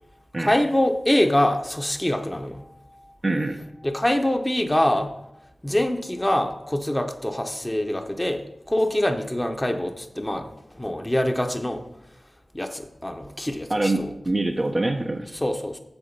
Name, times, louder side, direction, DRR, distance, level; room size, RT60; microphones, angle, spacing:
voice 1, 0.4-2.6 3.8-5.2 5.6-11.8 12.5-14.1 15.3-15.8, left 1 dB, 15° left, 5 dB, 0.8 m, -24 dB
voice 2, 3.2-3.6 13.7-15.4, right 2 dB, 40° right, 2 dB, 0.7 m, -25 dB
7.3 x 7.0 x 5.2 m, 0.88 s
wide cardioid pair, 50°, 0 cm